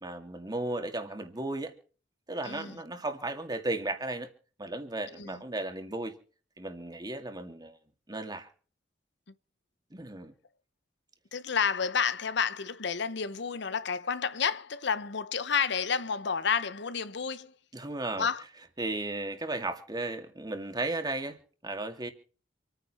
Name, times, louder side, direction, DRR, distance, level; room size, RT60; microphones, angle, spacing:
voice 1, 0.0-1.7 2.3-4.3 4.6-6.1 6.6-7.8 8.1-8.5 9.9-10.3 17.7-18.3 18.8-22.1, right 2 dB, 20° right, 2.3 m, -35 dB
voice 2, 2.4-2.8 5.2-5.3 11.3-17.5 18.2-18.4, left 6 dB, 65° left, 0.9 m, -30 dB
27.0 x 9.7 x 4.3 m
head